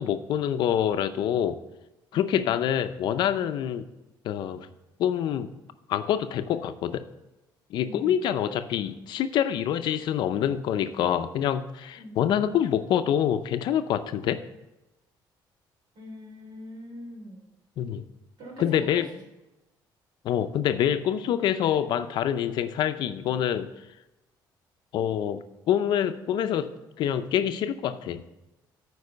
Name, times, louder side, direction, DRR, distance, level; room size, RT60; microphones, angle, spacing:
voice 1, 0.0-1.6 2.1-3.9 4.2-4.7 5.0-5.5 5.9-7.0 7.7-14.4 17.8-18.0 18.6-19.1 20.2-23.7 24.9-26.7 27.0-28.2, left 10 dB, 65° left, 10 dB, 0.5 m, -26 dB
voice 2, 2.1-2.5 7.8-8.2 11.9-12.3 15.9-17.4 18.4-19.1, equal, 65° right, 0 dB, 3.1 m, -42 dB
9.6 x 4.7 x 6.7 m, 0.96 s
cardioid pair, 160°, 8 cm